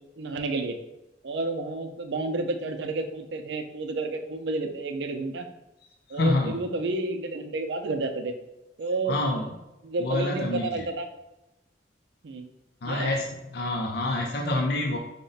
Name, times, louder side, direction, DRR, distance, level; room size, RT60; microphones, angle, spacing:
voice 1, 0.2-0.8 1.2-5.5 6.1-8.3 8.8-9.2 9.8-11.1 12.2-12.5 12.9-13.1, right 3 dB, 70° right, 6 dB, 0.5 m, -30 dB
voice 2, 6.1-6.6 9.1-9.6 10.0-10.9 12.8-15.0, left 2 dB, 65° left, 2 dB, 0.5 m, -27 dB
5.0 x 2.2 x 3.9 m, 0.95 s
head